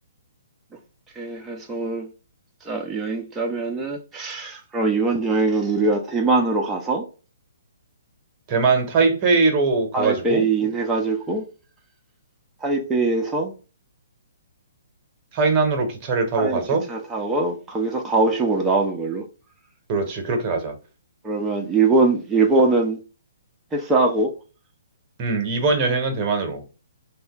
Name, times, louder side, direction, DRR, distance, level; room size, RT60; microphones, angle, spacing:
voice 1, 1.2-2.1 2.6-7.1 9.9-11.5 12.6-13.5 16.4-19.3 21.2-23.0 23.7-24.3, right 3 dB, 10° right, 0.6 m, -22 dB
voice 2, 8.5-10.4 15.3-16.8 19.9-20.8 25.2-26.6, right 4 dB, 30° right, 1.0 m, -21 dB
3.1 x 2.2 x 2.9 m
figure-of-eight pair, 130°, 0 cm